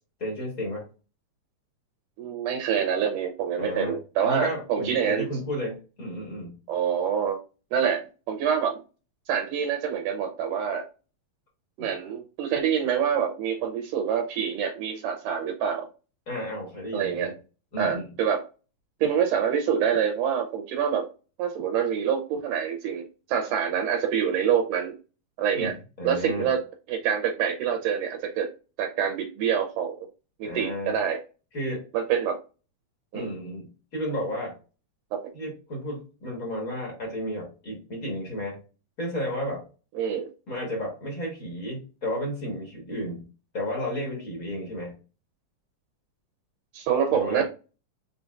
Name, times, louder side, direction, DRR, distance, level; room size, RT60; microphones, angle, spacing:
voice 1, 0.2-0.8 3.6-4.0 4.2-6.5 11.8-11.9 16.3-17.3 17.7-18.1 25.6-26.5 30.4-30.9 31.5-31.8 33.1-34.6 35.3-38.6 39.0-39.6 40.5-43.3 43.5-44.9 47.1-47.4, equal, 45° left, -2 dB, 1.1 m, -32 dB
voice 2, 2.2-5.3 6.7-7.4 7.7-8.8 9.3-10.8 11.8-15.9 16.9-17.3 17.8-18.4 19.0-21.1 21.4-25.0 25.4-25.7 26.0-26.6 26.9-28.5 28.8-30.0 30.4-31.2 31.9-32.4 33.1-33.3 35.1-35.2 40.0-40.3 46.7-47.4, right 8 dB, 75° right, 4 dB, 2.1 m, -26 dB
5.1 x 3.9 x 2.5 m, 0.33 s
omnidirectional pair, 3.9 m